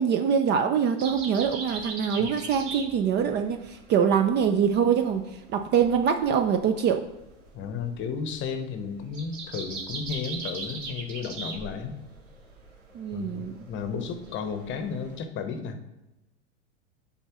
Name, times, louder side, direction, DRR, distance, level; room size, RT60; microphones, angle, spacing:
voice 1, 0.0-5.2 5.5-7.0 12.9-13.5, right 7 dB, 30° right, 6 dB, 0.5 m, -24 dB
sound 1, 1.0-15.2, right 4 dB, 80° right, 2.3 m, -40 dB
voice 2, 7.5-12.0 13.1-15.8, left 5 dB, 30° left, 7 dB, 0.9 m, -33 dB
8.8 x 4.3 x 3.0 m, 0.97 s
hypercardioid pair, 115°, 36 cm